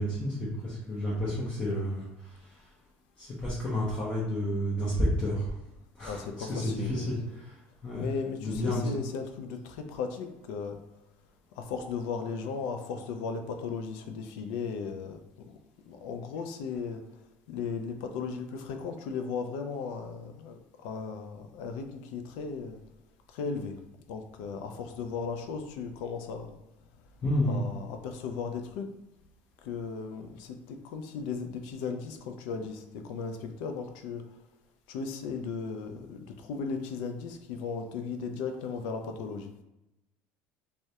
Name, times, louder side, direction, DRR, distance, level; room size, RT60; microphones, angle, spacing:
voice 1, 0.0-2.6 3.2-5.5 6.0-8.1 8.4-9.0 27.2-27.6, equal, 20° left, -6 dB, 0.5 m, -31 dB
voice 2, 6.0-7.2 8.0-10.8 11.6-15.2 15.5-15.6 15.9-17.0 17.5-22.8 23.3-23.8 24.1-26.6 27.5-28.9 29.6-34.2 34.9-39.5, left 5 dB, 85° left, 5 dB, 0.3 m, -36 dB
2.2 x 2.0 x 2.7 m, 0.92 s
cardioid pair, 155°, 5 cm